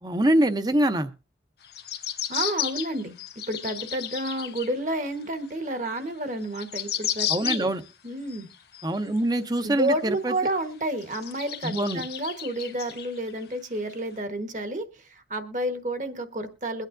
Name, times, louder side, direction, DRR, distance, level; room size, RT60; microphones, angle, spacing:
voice 1, 0.0-1.1 7.3-7.8 8.8-10.3 11.6-12.1, right 1 dB, 20° right, 9 dB, 0.7 m, -24 dB
sound 1, 1.6-4.7 5.2-5.3 6.1-6.2 6.3-7.9 8.3-9.2 9.8-9.9 10.4-10.5 11.0-13.4 13.9-14.0, left 11 dB, 65° left, 1.0 m, -33 dB
voice 2, 2.3-3.2 3.5-7.7 8.0-8.5 9.6-16.9, right 1 dB, 45° right, 7 dB, 1.3 m, -30 dB
22.0 x 9.1 x 2.6 m, 0.34 s
head